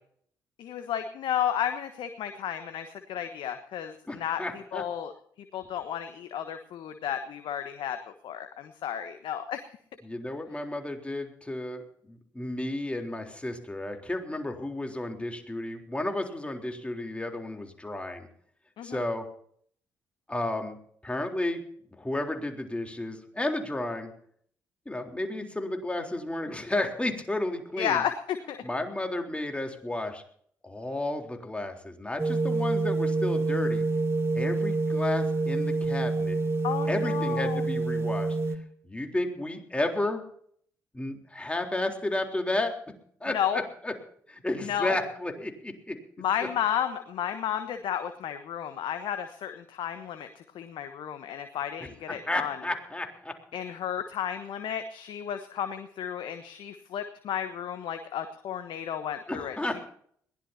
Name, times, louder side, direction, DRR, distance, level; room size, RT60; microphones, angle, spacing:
voice 1, 0.6-5.1 5.5-8.0 8.2-9.6 18.8-19.0 27.8-28.6 36.6-37.6 43.3-43.6 44.6-45.0 46.2-52.6 53.5-59.6, left 9 dB, 60° left, 8 dB, 1.3 m, -32 dB
voice 2, 4.1-4.8 10.0-18.3 18.8-19.3 20.3-20.8 21.0-21.6 22.0-24.1 24.9-28.0 28.6-30.2 30.6-33.8 34.4-36.4 36.9-38.4 38.8-40.2 40.9-42.8 43.2-43.9 44.3-46.0 51.8-53.4 59.3-59.9, left 2 dB, 10° left, 3 dB, 3.7 m, -32 dB
sound 1, 32.2-38.6, right 3 dB, 25° right, 2.5 m, -27 dB
21.5 x 17.0 x 2.8 m, 0.62 s
figure-of-eight pair, 45°, 9 cm